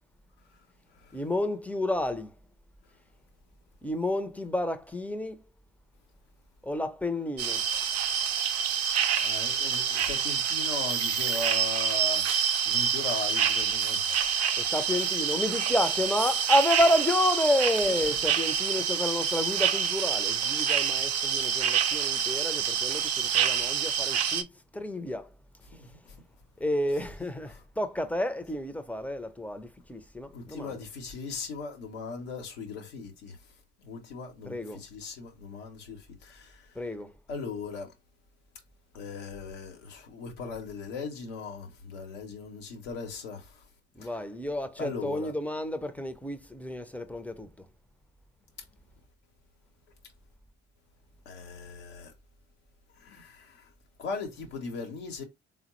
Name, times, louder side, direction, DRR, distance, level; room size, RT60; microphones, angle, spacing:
voice 1, 1.1-2.3 3.8-5.4 6.6-7.6 14.6-24.5 24.7-25.3 26.6-30.8 34.4-34.8 36.8-37.1 44.0-47.5, left 1 dB, 5° left, 0.5 m, -30 dB
sound 1, 7.4-24.4, right 7 dB, 45° right, 0.5 m, -27 dB
voice 2, 9.2-12.2 12.6-14.3 25.7-26.1 30.3-33.4 33.8-36.7 37.3-37.9 38.9-43.6 44.0-44.1 44.8-45.3 51.3-52.1 53.0-53.6 54.0-55.2, left 4 dB, 85° left, 0.9 m, -39 dB
3.6 x 2.1 x 3.0 m
hypercardioid pair, 50°, 36 cm